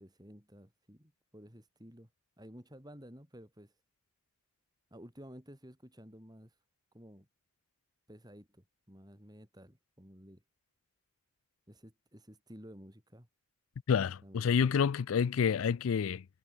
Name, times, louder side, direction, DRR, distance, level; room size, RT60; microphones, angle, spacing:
voice 1, 0.0-2.1 2.4-3.7 4.9-6.5 6.9-7.3 8.1-10.4 11.7-13.3 14.2-14.7, equal, 20° right, 6.4 m, -53 dB
voice 2, 13.9-16.2, left 6 dB, 85° left, 0.4 m, -28 dB
head